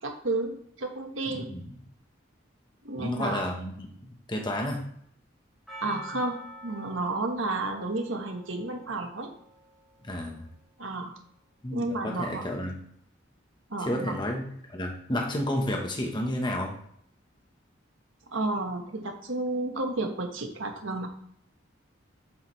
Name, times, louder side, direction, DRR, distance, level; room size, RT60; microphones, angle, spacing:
voice 1, 0.0-1.5 2.8-3.5 5.8-9.3 10.8-11.2 11.7-12.5 13.7-14.1 18.3-21.1, right 2 dB, 75° right, 4 dB, 1.3 m, -32 dB
voice 2, 3.0-4.8 10.0-10.5 11.6-12.8 13.8-14.4 14.7-16.7, left 1 dB, 25° left, 1 dB, 1.1 m, -31 dB
Percussion, 5.7-10.2, equal, ahead, 2.3 m, -47 dB
7.6 x 6.4 x 3.2 m, 0.69 s
head